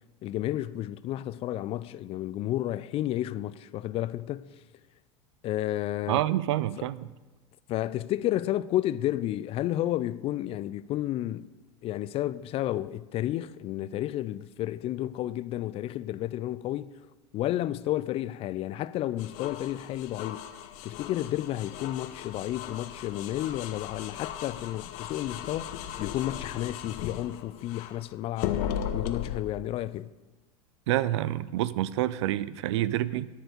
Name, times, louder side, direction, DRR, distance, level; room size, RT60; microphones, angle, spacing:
voice 1, 0.2-4.5 5.4-6.2 7.7-11.5 11.8-17.0 17.3-20.5 20.8-30.1, left 13 dB, 40° left, 0.4 m, -31 dB
voice 2, 6.1-7.1 30.9-33.3, right 14 dB, 70° right, 0.5 m, -27 dB
sound 1, 19.2-28.0 28.4-29.4, left 10 dB, 55° left, 0.8 m, -37 dB
11.0 x 4.7 x 8.2 m
hypercardioid pair, 95°, 15 cm